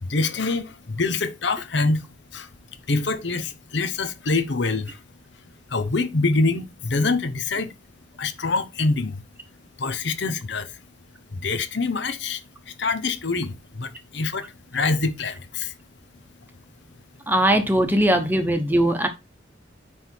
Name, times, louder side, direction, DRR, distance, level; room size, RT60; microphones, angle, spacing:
voice 1, 0.0-2.0 2.3-2.5 2.9-5.0 5.7-7.7 8.2-9.2 9.8-10.8 11.3-15.7, left 3 dB, 60° left, 0.8 m, -25 dB
voice 2, 17.3-19.1, right 1 dB, 10° right, 1.0 m, -20 dB
9.9 x 3.5 x 4.5 m
head